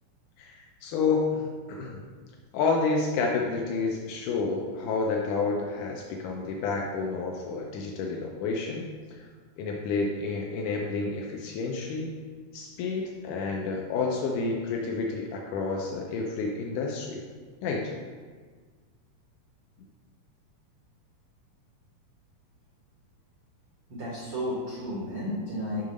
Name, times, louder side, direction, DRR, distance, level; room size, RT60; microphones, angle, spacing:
voice 1, 0.4-2.0 2.5-8.8 9.2-9.3 9.6-12.1 12.5-17.3 17.6-17.9, left 4 dB, 85° left, 0 dB, 1.8 m, -29 dB
voice 2, 23.9-25.8, equal, 80° right, -6 dB, 1.2 m, -32 dB
7.2 x 3.7 x 5.1 m, 1.5 s
omnidirectional pair, 4.2 m